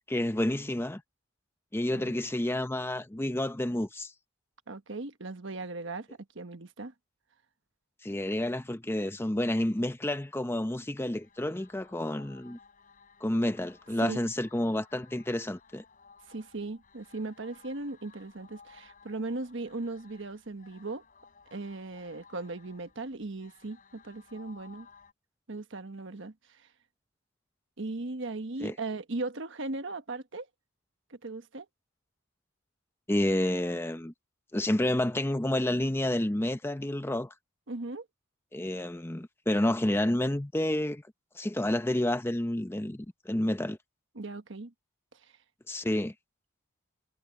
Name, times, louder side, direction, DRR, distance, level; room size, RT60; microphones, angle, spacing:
voice 1, 0.1-1.0 1.7-4.1 8.0-12.6 13.2-15.8 28.6-28.7 33.1-34.1 34.5-37.3 38.5-41.0 41.4-43.8 45.7-46.1, left 1 dB, 10° left, 0.6 m, -29 dB
voice 2, 4.7-6.1 6.3-6.9 14.0-14.2 16.3-21.0 21.5-24.9 25.5-26.6 27.8-30.5 31.1-31.7 37.7-38.1 44.1-44.7, right 2 dB, 60° right, 1.2 m, -38 dB
sound 1, 10.8-25.1, left 5 dB, 40° left, 5.4 m, -58 dB
head